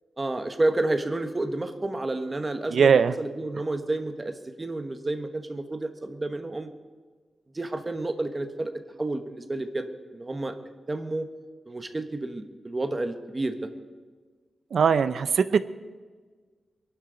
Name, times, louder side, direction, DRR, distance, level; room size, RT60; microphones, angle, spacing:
voice 1, 0.2-6.7 7.5-8.7 9.0-9.9 10.1-10.5 10.9-11.3 11.7-13.6, right 2 dB, 25° right, 7 dB, 1.2 m, -30 dB
voice 2, 2.7-3.1 14.7-15.6, right 6 dB, 80° right, 13 dB, 0.7 m, -20 dB
22.5 x 12.0 x 4.0 m, 1.4 s
wide cardioid pair, 130°, 0 cm